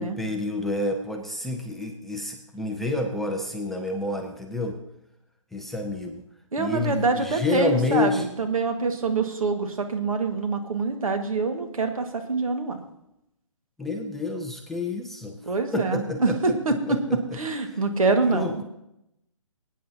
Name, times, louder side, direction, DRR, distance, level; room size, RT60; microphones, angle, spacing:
voice 1, 0.0-4.8 5.5-6.2 6.6-8.3 13.8-15.4 15.7-16.5 16.9-17.2 17.7-17.8 18.2-18.6, left 2 dB, ahead, 2 dB, 0.5 m, -29 dB
voice 2, 6.5-12.8 15.4-17.0 17.3-18.6, right 3 dB, 80° right, 5 dB, 1.8 m, -25 dB
22.0 x 9.2 x 2.8 m, 0.83 s
hypercardioid pair, 150°, 18 cm